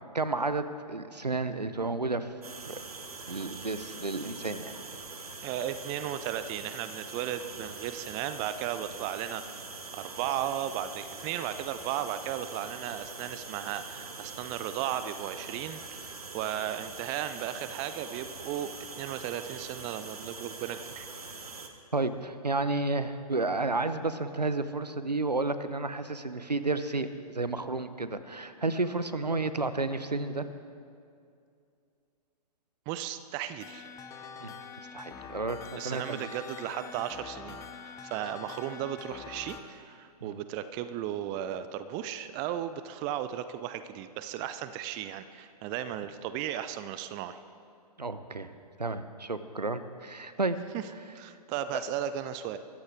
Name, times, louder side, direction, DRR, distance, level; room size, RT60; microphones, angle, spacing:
voice 1, 0.1-2.3 2.7-2.8 3.3-4.7 21.9-30.5 34.4-34.5 34.9-36.3 40.2-40.4 48.0-48.5 48.8-50.6 51.7-51.8, right 3 dB, 85° right, 12 dB, 0.9 m, -31 dB
sound 1, 2.4-21.7, right 4 dB, 65° right, 1.6 m, -43 dB
voice 2, 5.4-9.6 9.9-21.1 32.9-33.9 35.8-47.4 50.7-50.8 51.1-52.6, right 11 dB, 20° right, 12 dB, 0.4 m, -35 dB
sound 2, 33.6-39.6, left 6 dB, 15° left, 0.8 m, -45 dB
22.5 x 15.0 x 3.6 m, 2.4 s
figure-of-eight pair, 120°, 20 cm